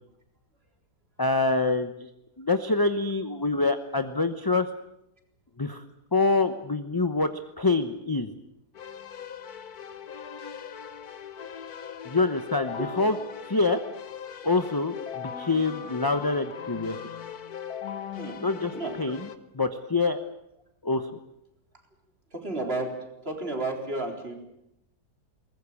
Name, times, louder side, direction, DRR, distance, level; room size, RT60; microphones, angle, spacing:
voice 1, 1.2-1.9 2.4-4.7 5.6-5.8 6.1-7.3 7.6-8.3 12.0-13.2 13.4-13.8 14.4-17.0 18.4-18.7 19.0-19.3 19.6-20.2 20.8-21.2, left 3 dB, 20° left, 8 dB, 0.8 m, -25 dB
Keyboard (musical), 8.7-19.4, left 8 dB, 65° left, 1.7 m, -39 dB
voice 2, 18.7-19.2 22.3-23.0 23.2-24.3, right 2 dB, 35° right, 3 dB, 4.2 m, -32 dB
22.0 x 20.5 x 8.5 m, 0.82 s
omnidirectional pair, 1.8 m